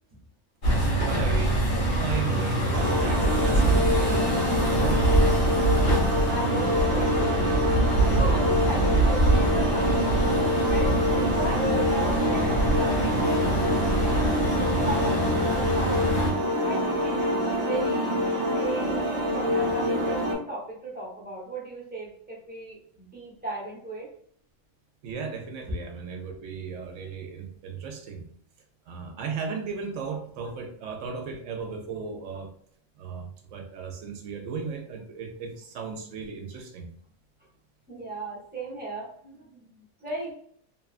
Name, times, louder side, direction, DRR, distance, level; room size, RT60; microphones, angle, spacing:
sound 1, 0.6-16.3, right 1 dB, 55° left, 1.3 m, -25 dB
voice 1, 1.0-1.6 2.0-5.2 25.0-28.3 28.9-32.5 33.0-36.9, right 5 dB, 70° right, 3 dB, 1.0 m, -36 dB
sound 2, 2.7-20.4, equal, 45° right, 0.5 m, -26 dB
voice 2, 6.3-7.7 7.9-10.1 10.6-13.4 14.5-16.0 16.6-24.1 37.9-40.3, right 1 dB, 10° right, -5 dB, 0.8 m, -36 dB
2.9 x 2.3 x 2.4 m, 0.62 s
omnidirectional pair, 1.5 m